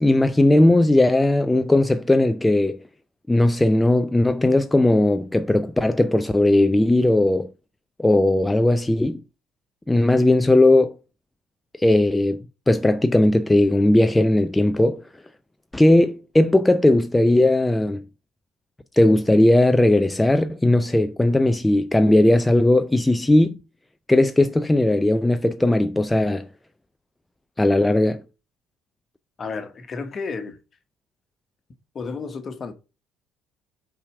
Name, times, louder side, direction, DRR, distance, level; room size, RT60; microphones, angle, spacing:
voice 1, 0.0-2.8 3.3-7.5 8.0-9.2 9.9-11.0 11.8-15.0 15.7-18.0 18.9-23.6 24.1-26.5 27.6-28.2, left 1 dB, 10° left, 0.5 m, -18 dB
voice 2, 29.4-30.6 31.9-32.7, left 4 dB, 40° left, 1.3 m, -32 dB
5.6 x 4.9 x 4.6 m
hypercardioid pair, 60°, 0 cm